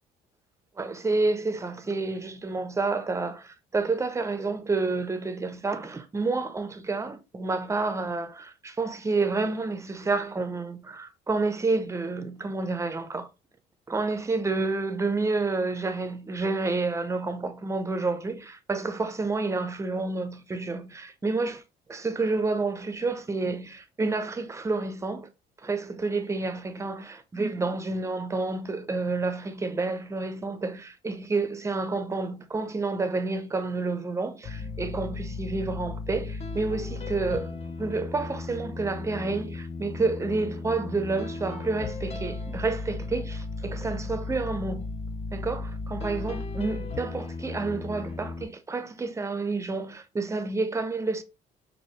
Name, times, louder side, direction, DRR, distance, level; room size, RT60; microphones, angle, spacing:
voice 1, 0.8-13.3 13.9-21.6 21.9-25.3 25.6-37.5 37.8-44.9 45.3-51.2, right 3 dB, 15° right, 0.6 m, -29 dB
Bass loving, 34.4-48.5, left 3 dB, 40° left, 0.7 m, -35 dB
4.5 x 2.5 x 3.1 m
cardioid pair, 110°, 17 cm